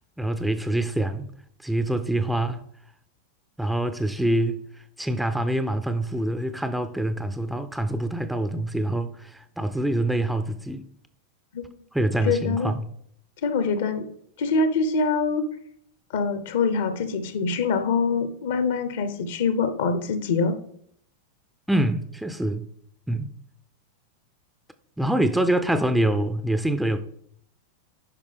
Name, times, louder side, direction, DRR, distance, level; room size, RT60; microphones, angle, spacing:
voice 1, 0.2-1.3 1.6-2.6 3.6-4.6 5.0-10.8 11.9-12.9 21.7-22.7 23.1-23.3 25.0-27.0, right 1 dB, 5° right, 0.5 m, -25 dB
voice 2, 12.2-12.7 13.4-14.1 14.4-15.5 16.1-20.5, left 4 dB, 55° left, 0.8 m, -24 dB
10.5 x 5.2 x 3.4 m
figure-of-eight pair, 90°, 0 cm